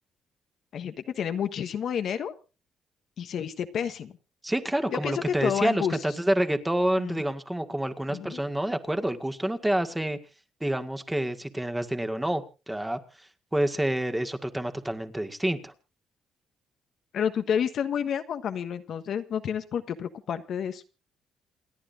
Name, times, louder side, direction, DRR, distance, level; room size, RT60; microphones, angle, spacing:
voice 1, 0.7-2.3 3.2-4.1 5.0-6.0 7.0-7.2 8.1-8.4 17.1-20.8, left 8 dB, 65° left, 9 dB, 1.3 m, -30 dB
voice 2, 4.4-10.2 10.6-15.7, right 1 dB, 10° right, 8 dB, 1.9 m, -28 dB
28.5 x 10.0 x 2.6 m, 0.32 s
cardioid pair, 90°, 0 cm